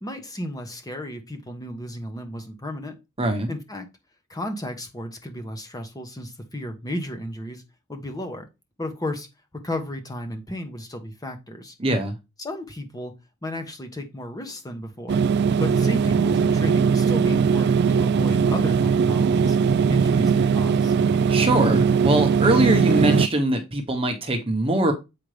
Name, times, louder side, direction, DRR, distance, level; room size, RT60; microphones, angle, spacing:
voice 1, 0.0-3.0 3.5-3.9 4.3-7.6 7.9-8.5 8.8-9.3 9.5-11.7 12.4-13.1 13.4-15.2 15.6-19.6 19.9-21.0, left 1 dB, 15° left, 1.0 m, -33 dB
voice 2, 3.2-3.5 11.8-12.1 21.3-24.9, right 1 dB, 25° right, 1.1 m, -22 dB
sound 1, 15.1-23.3, right 6 dB, 50° right, 0.4 m, -20 dB
7.7 x 5.1 x 3.3 m
head